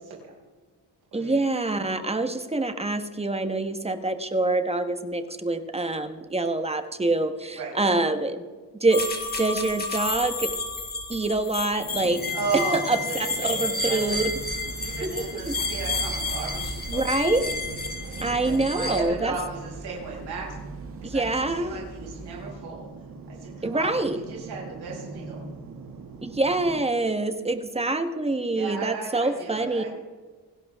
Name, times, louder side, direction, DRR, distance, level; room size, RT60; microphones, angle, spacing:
voice 1, 1.1-8.4 8.7-9.0 9.4-10.5 11.1-12.2 12.9-13.0 13.4-14.3 15.0-15.6 16.9-17.5 18.2-19.3 21.0-21.7 23.6-24.2 26.2-29.9, right 2 dB, 15° right, 8 dB, 1.2 m, -25 dB
sound 1, 8.9-19.0, left 3 dB, 25° left, 2.6 m, -31 dB
sound 2, 11.8-26.8, right 4 dB, 55° right, 2.1 m, -42 dB
voice 2, 12.3-14.2 14.8-17.3 18.1-20.6 21.0-22.8 23.3-25.4 28.5-29.9, right 4 dB, 75° right, -4 dB, 6.0 m, -35 dB
sound 3, 14.1-22.5, right 3 dB, 35° right, 1.8 m, -41 dB
27.5 x 11.5 x 3.5 m, 1.4 s
cardioid pair, 125°, 39 cm